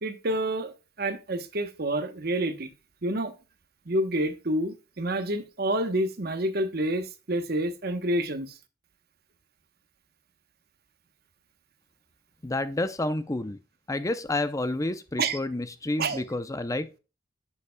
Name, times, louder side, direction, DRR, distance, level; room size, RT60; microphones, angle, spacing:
voice 1, 0.0-2.7 3.0-3.4 3.9-8.5 15.2-15.4 16.0-16.2, right 1 dB, 55° right, 1.0 m, -28 dB
voice 2, 12.4-13.6 13.9-17.0, left 2 dB, 20° left, 0.5 m, -29 dB
9.9 x 6.9 x 2.2 m
head